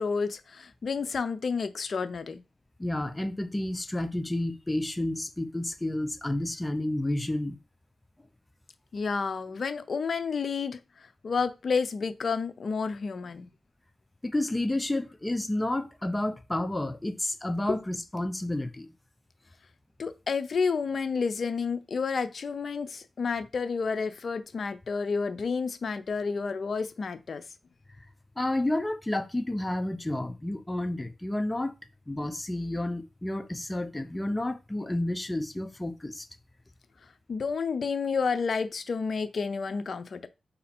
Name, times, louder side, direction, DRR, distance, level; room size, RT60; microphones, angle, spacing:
voice 1, 0.0-2.4 8.9-10.8 11.2-13.5 17.7-17.8 20.0-27.4 37.3-40.3, left 5 dB, 65° left, 0.5 m, -30 dB
voice 2, 2.8-7.6 14.2-18.9 28.4-31.8 32.1-36.3, left 1 dB, 20° left, 0.6 m, -30 dB
4.0 x 2.7 x 4.3 m
cardioid pair, 50°, 0 cm